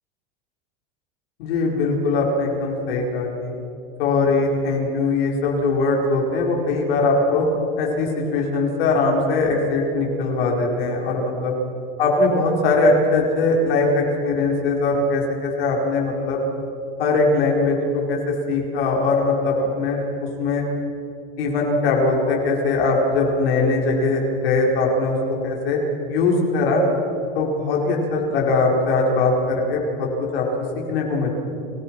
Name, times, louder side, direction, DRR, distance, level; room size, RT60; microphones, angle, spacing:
voice 1, 1.4-3.5 4.0-7.5 7.8-11.5 12.0-16.4 17.0-20.0 20.4-20.6 21.4-25.2 25.4-25.8 26.1-26.8 27.3-30.1 30.3-30.5 30.8-31.3, left 3 dB, 75° left, -1 dB, 4.7 m, -21 dB
30.0 x 14.0 x 6.1 m, 2.7 s
hypercardioid pair, 115°, 30 cm